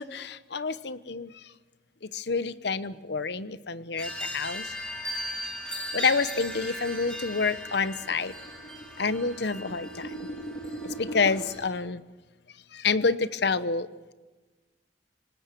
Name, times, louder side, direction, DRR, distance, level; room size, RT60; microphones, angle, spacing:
voice 1, 0.0-1.4 2.0-4.7 5.9-8.3 9.0-10.1 10.8-12.0 12.7-13.9, left 4 dB, 70° left, 15 dB, 0.9 m, -28 dB
sound 1, 4.0-11.7, equal, 5° left, 4.2 m, -38 dB
sound 2, 6.9-11.3, right 1 dB, 35° left, 2.0 m, -41 dB
27.0 x 18.5 x 6.9 m, 1.2 s
head